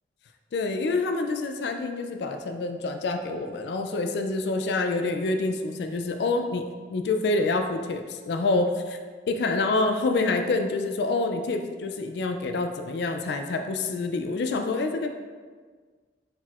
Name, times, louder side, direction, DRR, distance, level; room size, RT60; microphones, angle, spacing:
voice 1, 0.5-9.0 9.3-15.2, left 3 dB, 70° left, 5 dB, 0.3 m, -27 dB
4.3 x 3.9 x 2.4 m, 1.5 s
head